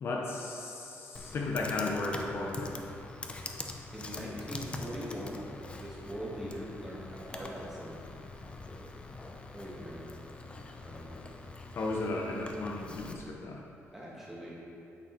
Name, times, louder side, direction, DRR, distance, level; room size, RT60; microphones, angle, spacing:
voice 1, 0.0-2.8 11.7-13.6, left 2 dB, 50° left, -1 dB, 0.8 m, -35 dB
Computer keyboard, 1.2-13.1, left 2 dB, 20° left, 0.6 m, -44 dB
voice 2, 3.9-5.4 5.8-8.0 9.5-10.1 10.8-11.2 13.9-14.5, equal, 5° right, -6 dB, 2.0 m, -41 dB
8.7 x 6.1 x 4.5 m, 2.9 s
cardioid pair, 125°, 5 cm